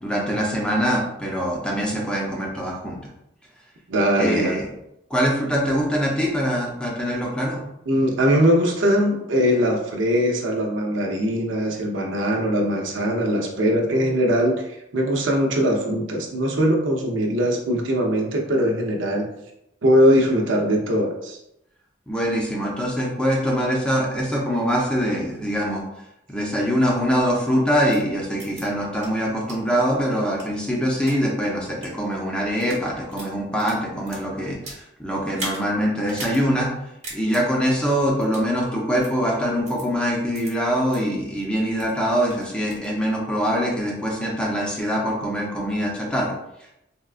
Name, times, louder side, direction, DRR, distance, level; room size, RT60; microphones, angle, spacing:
voice 1, 0.0-3.0 4.1-4.6 5.1-7.6 22.1-25.8 26.3-36.7 37.1-46.3, equal, 5° left, -3 dB, 0.5 m, -23 dB
voice 2, 3.9-4.5 7.9-19.3 19.8-21.4, equal, 80° right, 0 dB, 0.6 m, -21 dB
sound 1, 27.9-28.0 28.4-28.6 29.0-29.1 29.5-29.6 30.1-31.2 31.7-31.9 32.5-32.8 33.1-34.8 35.3-35.6 36.1-36.4 36.7-36.8 37.0-37.4 38.2-38.5 39.0-39.1 39.7-39.8 40.3-40.5 40.9-41.0 41.4-41.9 42.3-42.9, right 2 dB, 35° right, 1.0 m, -37 dB
3.5 x 2.2 x 2.4 m, 0.83 s
head